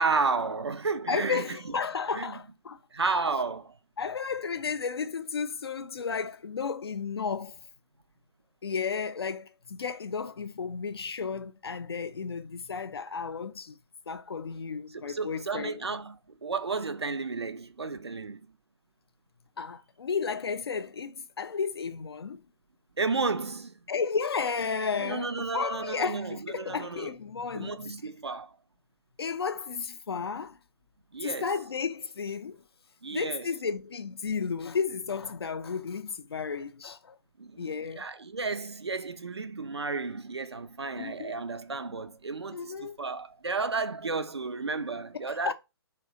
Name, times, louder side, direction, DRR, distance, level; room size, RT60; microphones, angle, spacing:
voice 1, 0.0-1.6 2.1-2.3 2.9-3.8 15.0-16.2 16.4-18.5 23.0-23.7 25.0-27.1 27.5-28.5 31.1-31.5 33.0-33.4 37.4-45.5, right 4 dB, 80° right, 0.4 m, -32 dB
voice 2, 1.1-2.8 4.0-7.6 8.6-13.8 14.1-15.8 19.6-22.4 23.9-27.8 29.2-30.6 31.2-32.6 33.1-37.2 37.6-38.1 41.0-41.4 42.5-43.0 45.5-45.6, left 5 dB, 70° left, 0.4 m, -33 dB
2.7 x 2.2 x 3.6 m
figure-of-eight pair, 130°, 14 cm